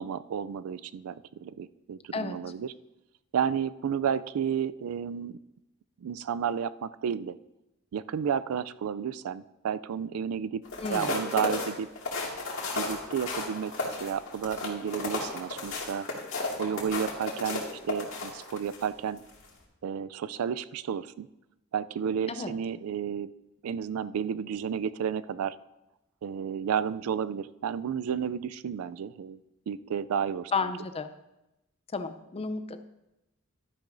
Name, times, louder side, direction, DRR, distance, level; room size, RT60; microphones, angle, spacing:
voice 1, 0.0-2.7 3.3-5.4 6.0-7.4 7.9-10.6 10.9-11.9 12.7-16.1 16.6-19.2 19.8-21.3 21.7-23.3 23.6-25.6 26.2-29.4 29.7-30.5, right 7 dB, 90° right, 17 dB, 0.4 m, -32 dB
sound 1, 10.6-18.8 19.3-19.5, left 3 dB, 65° left, 2.2 m, -33 dB
voice 2, 10.8-11.2 22.3-22.5 30.5-31.1 31.9-32.8, left 4 dB, 30° left, 10 dB, 0.5 m, -32 dB
12.0 x 10.0 x 2.6 m, 0.93 s
head